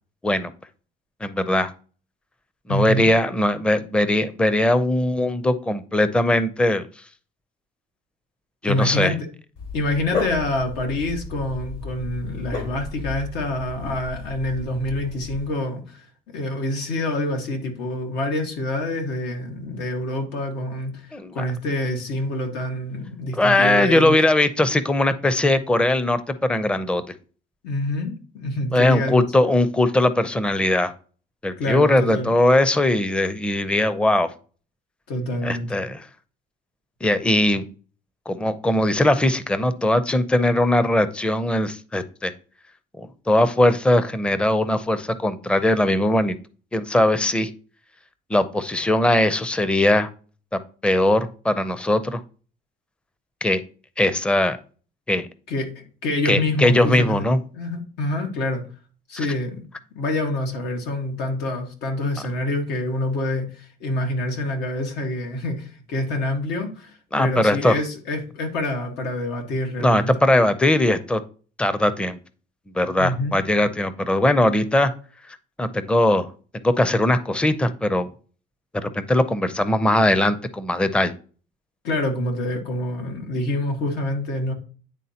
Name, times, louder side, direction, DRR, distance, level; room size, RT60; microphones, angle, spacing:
voice 1, 1.2-1.7 2.7-6.8 8.6-9.1 21.1-21.4 23.4-27.0 28.7-30.9 31.4-34.3 35.4-36.1 37.0-37.7 38.3-42.3 43.0-46.3 46.7-47.5 48.3-50.1 50.5-52.2 53.4-53.6 54.0-54.6 55.1-55.3 56.3-57.4 67.1-67.7 69.8-71.2 71.6-72.2 72.7-74.9 75.6-76.3 76.5-78.1 78.8-81.1, left 1 dB, 5° left, 0.5 m, -20 dB
voice 2, 2.7-3.0 8.6-9.3 9.7-24.2 27.6-29.2 31.6-32.3 35.1-35.7 55.5-57.3 57.5-58.6 59.1-59.6 59.9-70.1 73.0-73.3 81.8-84.5, left 1 dB, 90° left, 1.6 m, -26 dB
Dog, 9.6-15.5, left 3 dB, 70° left, 2.8 m, -33 dB
9.7 x 3.7 x 2.8 m
cardioid pair, 110°, 17 cm